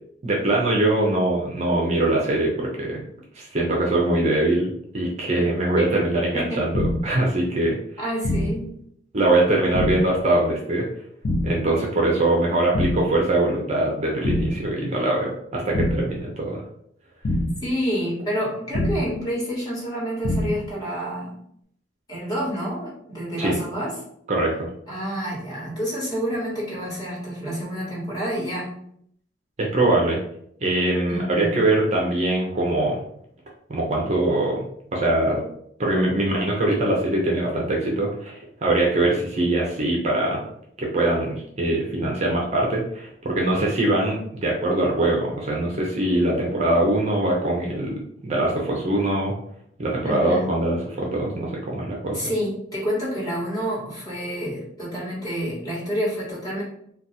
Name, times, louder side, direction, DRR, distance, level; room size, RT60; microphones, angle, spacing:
voice 1, 0.2-3.0 3.4-7.8 9.1-10.9 11.4-16.6 23.4-23.6 24.3-24.7 29.6-30.2 30.6-33.0 33.7-35.4 35.8-40.4 40.8-49.3 49.8-52.2, right 1 dB, 35° right, -2 dB, 0.6 m, -22 dB
sound 1, 6.7-7.2 8.2-8.7 9.7-10.2 11.2-11.7 12.7-13.2 14.2-14.7 15.7-16.2 17.2-17.7 18.7-19.2 20.2-20.7, left 1 dB, 80° left, 0.6 m, -25 dB
voice 2, 8.0-8.7 17.6-21.4 22.1-24.0 24.9-28.8 31.1-31.5 50.0-50.5 52.1-56.6, equal, 20° left, -7 dB, 1.4 m, -28 dB
2.5 x 2.3 x 4.0 m, 0.69 s
head